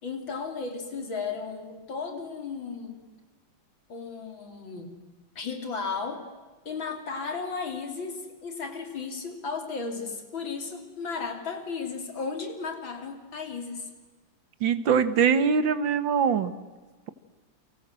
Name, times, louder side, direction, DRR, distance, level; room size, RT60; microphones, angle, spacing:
voice 1, 0.0-3.1 3.9-5.0 5.4-6.3 6.7-13.9, left 5 dB, 85° left, 6 dB, 4.1 m, -35 dB
voice 2, 14.6-16.5, right 6 dB, 80° right, 12 dB, 2.2 m, -23 dB
29.5 x 24.5 x 7.7 m, 1.3 s
omnidirectional pair, 2.1 m